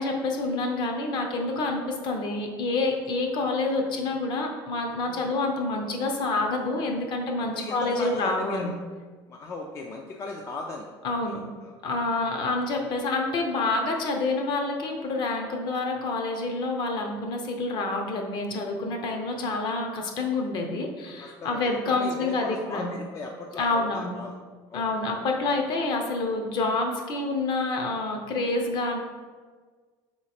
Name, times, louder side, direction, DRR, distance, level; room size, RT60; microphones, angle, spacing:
voice 1, 0.0-8.7 11.0-11.4 11.8-22.9 23.6-24.2 24.7-29.0, left 3 dB, 50° left, 3 dB, 0.7 m, -28 dB
voice 2, 7.6-8.8 9.3-10.9 11.3-11.7 21.2-24.4 24.7-24.9, left 3 dB, 30° left, 1 dB, 0.3 m, -37 dB
4.0 x 3.0 x 4.1 m, 1.5 s
cardioid pair, 140°, 10 cm